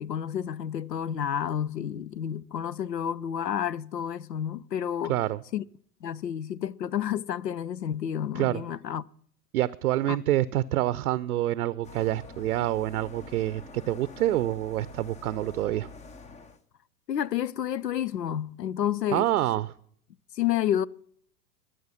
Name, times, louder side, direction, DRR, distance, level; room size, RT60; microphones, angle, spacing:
voice 1, 0.0-5.2 5.5-5.6 6.0-9.0 10.1-10.2 17.1-19.3 20.4-20.9, left 10 dB, 85° left, 0.6 m, -30 dB
voice 2, 5.1-5.4 8.3-8.6 9.5-15.9 19.1-19.7, right 14 dB, 65° right, 0.6 m, -27 dB
sound 1, 11.8-16.6, left 4 dB, 15° left, 0.7 m, -46 dB
21.5 x 7.8 x 5.7 m
figure-of-eight pair, 95°, 48 cm